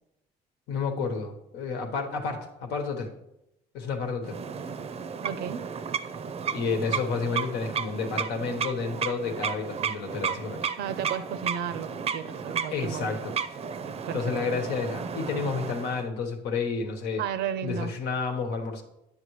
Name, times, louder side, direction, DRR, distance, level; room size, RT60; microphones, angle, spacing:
voice 1, 0.7-3.1 3.7-4.4 6.5-10.7 12.7-13.4 14.1-17.2 17.6-18.8, left 5 dB, 80° left, 3 dB, 1.3 m, -30 dB
sound 1, 4.2-16.1, right 6 dB, 35° right, 0.5 m, -33 dB
voice 2, 5.2-5.6 10.8-13.2 13.8-14.4 17.2-17.9, right 8 dB, 80° right, 13 dB, 0.6 m, -33 dB
9.9 x 7.4 x 3.2 m, 0.86 s
cardioid pair, 110°, 17 cm